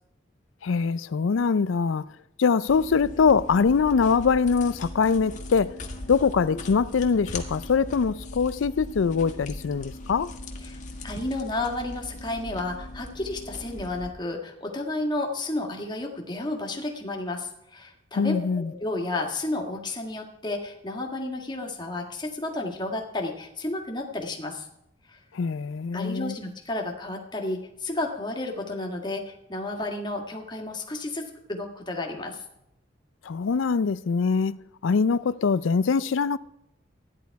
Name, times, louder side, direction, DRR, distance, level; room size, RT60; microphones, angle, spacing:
voice 1, 0.6-2.0 2.4-5.8 6.1-10.3 18.2-18.7 25.3-26.4 33.2-34.6 34.8-36.4, left 5 dB, 85° left, 0.4 m, -23 dB
sound 1, 2.7-14.1, left 1 dB, 40° left, 1.5 m, -39 dB
voice 2, 11.0-24.7 25.1-25.2 25.9-32.4, left 2 dB, 25° left, 1.7 m, -32 dB
14.0 x 10.5 x 4.7 m
head